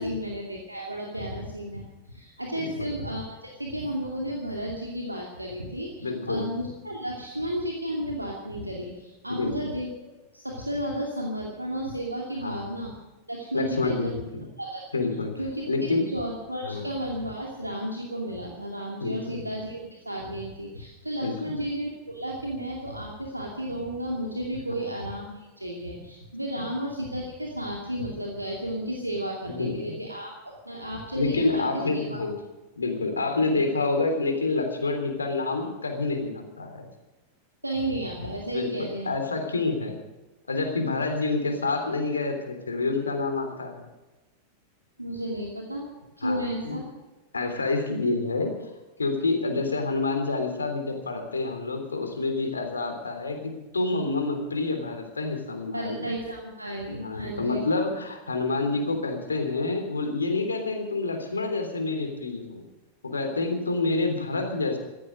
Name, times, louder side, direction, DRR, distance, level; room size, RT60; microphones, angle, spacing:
voice 1, 0.0-9.9 10.3-12.9 13.3-14.2 14.6-14.8 15.4-32.2 37.6-39.1 45.0-45.9 46.2-46.8 55.7-57.7, right 1 dB, 85° right, -1 dB, 2.5 m, -33 dB
voice 2, 6.0-6.5 9.3-9.5 12.4-12.6 13.5-14.4 14.9-15.3 15.7-16.1 16.6-16.8 19.0-19.4 21.2-21.3 24.7-24.8 26.6-26.7 29.5-30.0 31.1-32.4 32.8-36.9 38.5-40.0 40.5-43.8 46.2-46.8 47.3-48.5 49.0-56.1 56.9-62.6 63.0-64.8, left 3 dB, 75° left, 5 dB, 3.4 m, -28 dB
16.0 x 13.5 x 6.4 m, 1.1 s
figure-of-eight pair, 90°, 0 cm